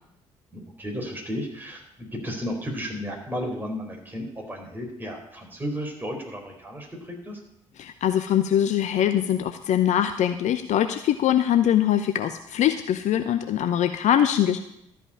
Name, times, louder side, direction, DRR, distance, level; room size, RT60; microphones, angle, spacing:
voice 1, 0.5-7.4, equal, 10° right, 0 dB, 4.3 m, -33 dB
voice 2, 7.8-14.6, left 10 dB, 50° left, 9 dB, 0.7 m, -22 dB
13.0 x 5.4 x 8.6 m, 0.78 s
figure-of-eight pair, 50°, 16 cm